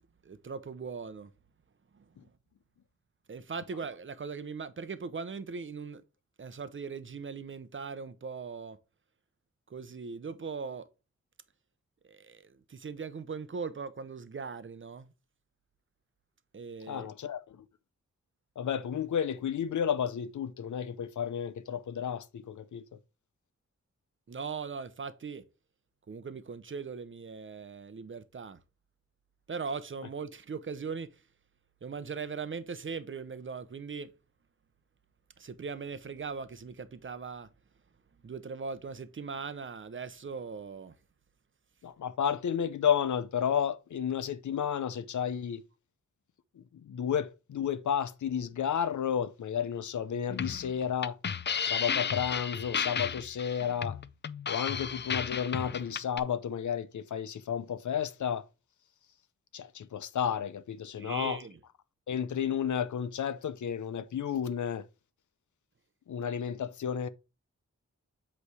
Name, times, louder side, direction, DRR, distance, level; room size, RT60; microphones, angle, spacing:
voice 1, 0.2-1.3 1.9-2.3 3.3-6.0 6.4-8.8 9.7-10.9 12.0-15.1 16.5-17.1 24.3-25.4 26.1-28.6 29.5-31.2 31.8-34.1 35.4-37.5 38.2-41.0 61.0-61.6, right 5 dB, 45° right, 0.7 m, -39 dB
voice 2, 16.9-17.6 18.6-23.0 41.8-45.6 46.5-51.2 51.6-54.0 54.5-58.5 59.5-61.4 62.1-64.9 66.1-67.1, left 8 dB, 85° left, 0.6 m, -32 dB
sound 1, 50.3-56.2, left 7 dB, 40° left, 0.4 m, -33 dB
8.1 x 3.3 x 4.8 m
wide cardioid pair, 120°, 29 cm